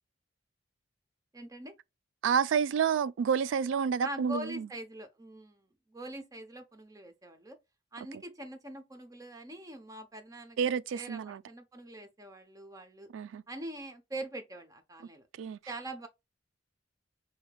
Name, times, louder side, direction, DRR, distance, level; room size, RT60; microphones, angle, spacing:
voice 1, 1.3-1.7 4.0-7.6 7.9-13.1 13.5-15.3 15.7-16.1, right 1 dB, 20° right, 0.7 m, -43 dB
voice 2, 2.2-4.7 10.6-11.4 13.1-13.4 15.4-15.6, right 7 dB, 90° right, 0.3 m, -29 dB
6.3 x 2.9 x 2.2 m
head